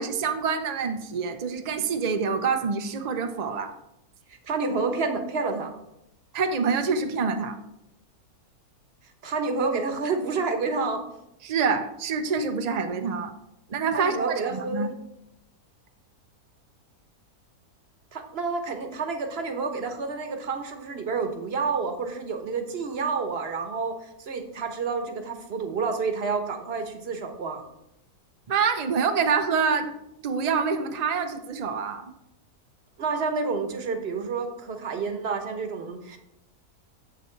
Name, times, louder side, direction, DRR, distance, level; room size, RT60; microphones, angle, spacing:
voice 1, 0.0-3.7 6.3-7.6 11.4-13.3 13.7-14.9 28.5-29.9 30.2-32.0, right 5 dB, 75° right, 7 dB, 0.3 m, -26 dB
voice 2, 4.4-5.7 9.2-11.0 13.9-15.0 18.1-27.6 33.0-36.2, right 4 dB, 45° right, 7 dB, 1.0 m, -29 dB
7.5 x 6.7 x 4.4 m, 0.84 s
omnidirectional pair, 1.6 m